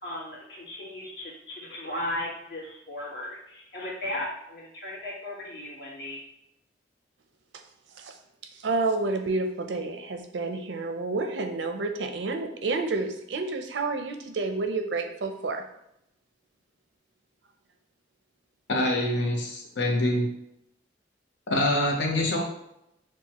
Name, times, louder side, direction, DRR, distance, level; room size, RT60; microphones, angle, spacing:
voice 1, 0.0-6.2, left 1 dB, 65° left, -5 dB, 1.5 m, -36 dB
voice 2, 8.5-15.6, right 3 dB, 85° right, 5 dB, 0.5 m, -29 dB
voice 3, 18.7-20.3 21.5-22.4, left 1 dB, 90° left, 1 dB, 0.8 m, -25 dB
6.1 x 2.2 x 2.9 m, 0.82 s
head